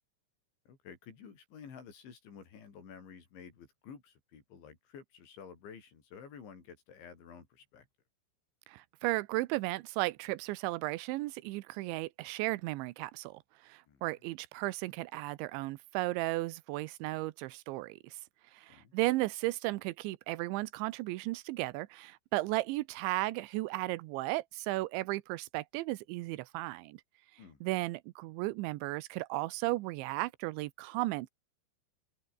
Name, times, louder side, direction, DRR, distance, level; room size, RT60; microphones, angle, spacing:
voice 1, 0.7-7.9 13.9-14.0 18.7-18.9 27.4-27.6, left 6 dB, 85° left, 7.3 m, -51 dB
voice 2, 8.7-18.2 18.5-27.0 27.6-31.3, right 19 dB, 85° right, 3.2 m, -35 dB
open air
omnidirectional pair, 5.2 m